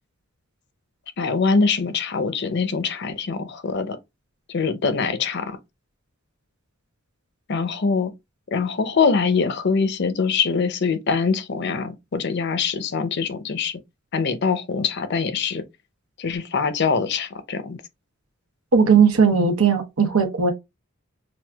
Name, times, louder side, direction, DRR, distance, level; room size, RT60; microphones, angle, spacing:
voice 1, 1.2-4.0 4.5-5.6 7.5-8.1 8.5-13.8 14.1-15.6 16.2-17.8, left 5 dB, 50° left, 0.6 m, -23 dB
voice 2, 18.7-20.5, right 5 dB, 90° right, 0.9 m, -17 dB
6.0 x 2.4 x 2.3 m
head